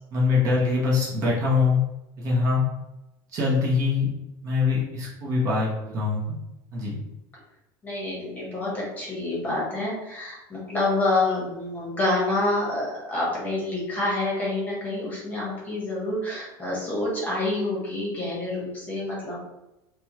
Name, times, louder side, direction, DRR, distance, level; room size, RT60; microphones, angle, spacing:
voice 1, 0.1-1.8 2.2-2.6 3.3-4.1 4.4-6.3 6.7-6.9, left 4 dB, 30° right, -5 dB, 1.0 m, -23 dB
voice 2, 7.8-19.4, left 2 dB, 15° left, -5 dB, 1.2 m, -27 dB
5.1 x 2.4 x 3.0 m, 0.94 s
supercardioid pair, 170°, 11 cm